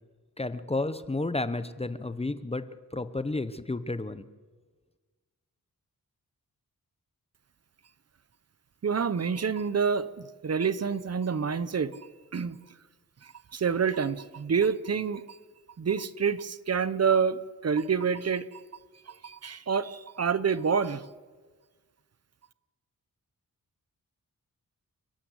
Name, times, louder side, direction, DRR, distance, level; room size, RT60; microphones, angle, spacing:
voice 1, 0.4-2.6 2.9-4.2, left 2 dB, 15° left, 12 dB, 0.7 m, -31 dB
voice 2, 8.8-11.9 12.3-12.6 13.2-15.4 15.8-18.6 19.1-21.1, right 6 dB, 45° right, 15 dB, 0.8 m, -28 dB
29.5 x 12.5 x 8.1 m, 1.4 s
wide cardioid pair, 155°, 35 cm